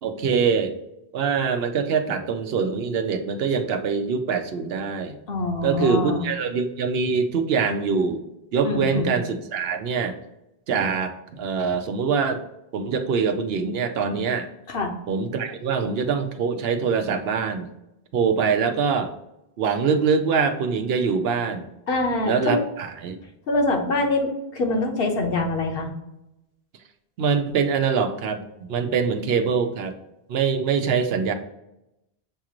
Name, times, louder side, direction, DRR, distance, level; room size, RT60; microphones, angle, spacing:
voice 1, 0.0-0.7 1.1-5.2 5.6-8.2 8.5-10.1 10.7-12.4 12.7-14.5 15.1-17.7 18.1-19.1 19.6-21.7 22.3-23.2 27.2-29.9 30.3-31.3, right 5 dB, 75° right, 7 dB, 0.9 m, -24 dB
voice 2, 5.3-6.3 8.6-9.2 14.7-14.9 21.9-22.6 23.5-25.9, left 2 dB, 65° left, 2 dB, 1.1 m, -24 dB
7.2 x 2.5 x 2.9 m, 0.87 s
omnidirectional pair, 1.1 m